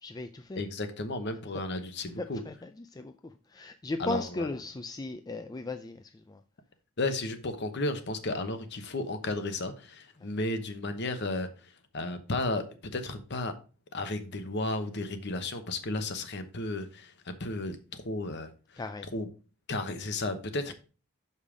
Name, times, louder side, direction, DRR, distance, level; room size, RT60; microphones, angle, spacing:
voice 1, 0.0-0.6 2.2-6.4 10.2-10.3 18.8-19.1 20.7-20.8, left 2 dB, 15° left, 0.3 m, -37 dB
voice 2, 0.5-2.4 4.0-4.5 7.0-13.5 13.9-18.8 19.1-19.3 19.7-20.7, left 2 dB, 50° left, 1.0 m, -33 dB
6.6 x 5.5 x 5.0 m
head